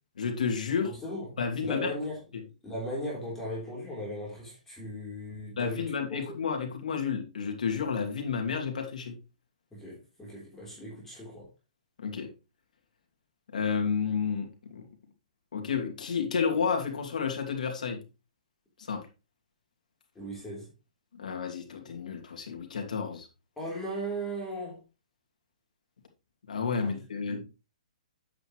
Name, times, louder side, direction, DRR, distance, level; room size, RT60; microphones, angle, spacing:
voice 1, 0.2-0.9 1.4-1.9 5.6-9.2 12.0-12.3 13.5-14.9 15.5-18.0 18.9-19.1 21.2-23.3 26.5-27.4, left 6 dB, 80° left, 2.7 m, -31 dB
voice 2, 1.0-2.2 2.6-6.2 9.7-11.5 20.2-20.7 23.6-24.8 26.8-26.9 27.3-27.4, equal, 5° left, 3.8 m, -37 dB
8.8 x 8.2 x 3.2 m
hypercardioid pair, 160°, 4 cm